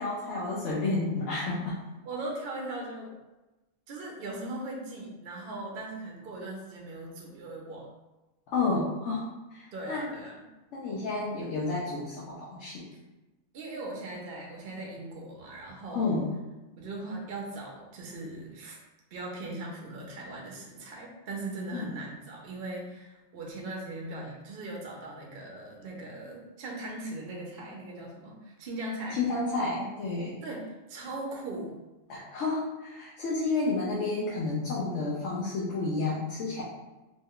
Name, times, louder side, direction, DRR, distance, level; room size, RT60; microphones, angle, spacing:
voice 1, 0.0-1.8 8.5-9.2 9.5-10.1 10.7-12.9 15.9-16.3 21.7-21.9 29.1-30.4 32.1-36.6, left 3 dB, 75° left, -6 dB, 1.0 m, -30 dB
voice 2, 2.0-3.1 3.9-7.9 9.7-10.5 12.9-13.0 13.5-16.2 16.8-18.8 19.1-29.2 30.4-31.7, right 2 dB, 55° right, -1 dB, 0.7 m, -39 dB
3.0 x 2.1 x 3.6 m, 1.1 s
omnidirectional pair, 1.3 m